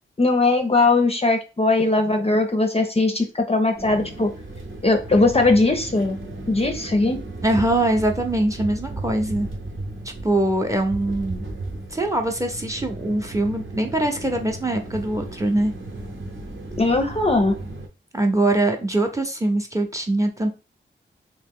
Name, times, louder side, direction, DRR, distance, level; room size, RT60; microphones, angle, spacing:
voice 1, 0.2-4.3 4.8-6.2 6.5-7.2 16.7-17.5, left 2 dB, 30° left, 5 dB, 0.5 m, -19 dB
sound 1, 3.7-17.9, right 2 dB, 75° right, 0.9 m, -35 dB
voice 2, 7.4-9.5 10.2-11.5 11.9-15.7 18.1-20.5, right 1 dB, 15° right, 5 dB, 0.6 m, -22 dB
2.9 x 2.9 x 3.6 m, 0.32 s
wide cardioid pair, 95°, 20 cm